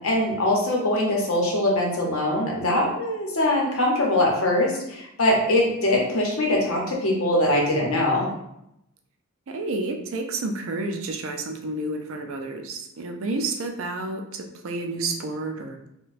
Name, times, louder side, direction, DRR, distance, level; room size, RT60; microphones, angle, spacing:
voice 1, 0.0-8.3, left 1 dB, 70° left, -1 dB, 0.8 m, -22 dB
voice 2, 9.5-15.9, right 2 dB, 65° right, 4 dB, 0.4 m, -30 dB
3.9 x 2.2 x 2.5 m, 0.80 s
head